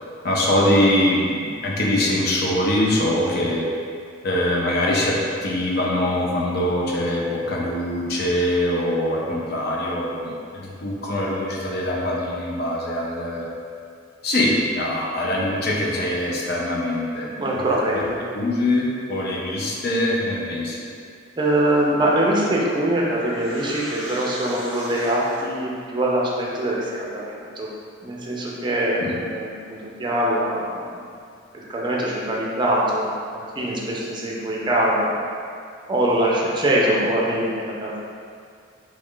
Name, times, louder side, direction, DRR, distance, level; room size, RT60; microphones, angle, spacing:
voice 1, 0.2-3.7 4.2-5.2 5.4-13.4 14.2-17.7 17.9-18.0 18.3-20.8 29.0-29.1, left 1 dB, 50° left, -3 dB, 0.5 m, -23 dB
voice 2, 17.4-18.2 21.4-27.7 28.0-31.0 31.5-35.2 35.9-38.0, right 1 dB, 25° right, -4 dB, 0.4 m, -23 dB
sound 1, 22.8-25.6, equal, 70° left, 1.0 m, -38 dB
3.1 x 2.4 x 3.6 m, 2.3 s
head